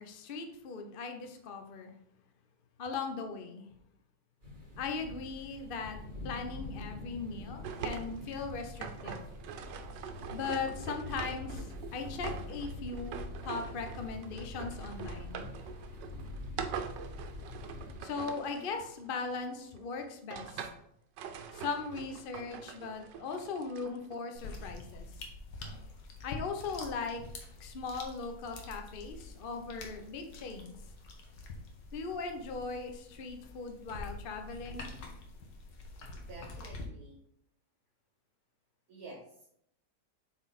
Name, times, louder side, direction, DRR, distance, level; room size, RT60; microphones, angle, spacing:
voice 1, 0.0-1.9 2.8-3.7 4.8-6.0 6.2-9.2 10.3-15.5 18.0-20.7 21.5-25.1 26.2-27.2 27.6-30.7 31.9-34.9, left 4 dB, 45° left, 5 dB, 0.7 m, -39 dB
sound 1, 4.4-18.0, left 3 dB, 25° right, 2.8 m, -45 dB
sound 2, 7.6-19.5 20.0-20.9 21.2-24.2, right 7 dB, 90° right, 1.3 m, -44 dB
sound 3, 24.3-36.8, left 2 dB, 90° left, 1.8 m, -46 dB
voice 2, 36.2-37.2 38.9-39.5, right 2 dB, 60° right, -2 dB, 1.5 m, -49 dB
7.9 x 4.1 x 4.0 m, 0.73 s
omnidirectional pair, 1.8 m